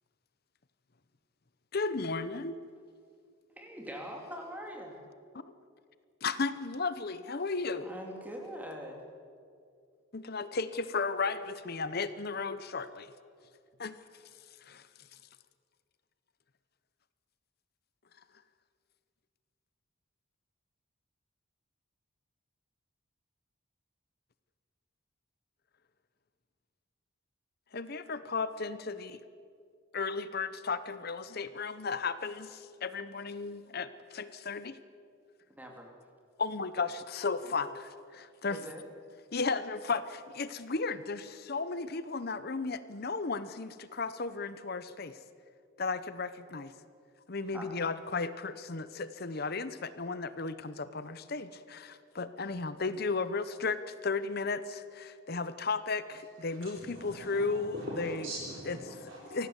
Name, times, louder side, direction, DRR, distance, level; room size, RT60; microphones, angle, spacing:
voice 1, 1.7-2.6 5.4-5.5 6.2-7.9 10.1-13.1 13.8-14.0 14.7-14.8 27.7-29.2 29.9-34.8 36.4-38.6 39.3-45.2 45.8-46.7 47.3-58.2 59.3-59.5, left 4 dB, 50° left, 14 dB, 0.8 m, -34 dB
voice 2, 3.6-5.0 7.8-9.0 35.5-35.9 38.5-38.9 47.5-47.7, equal, 10° right, 1 dB, 2.8 m, -43 dB
voice 3, 56.5-59.5, right 1 dB, 65° right, -5 dB, 4.2 m, -42 dB
24.5 x 17.5 x 8.1 m, 2.3 s
head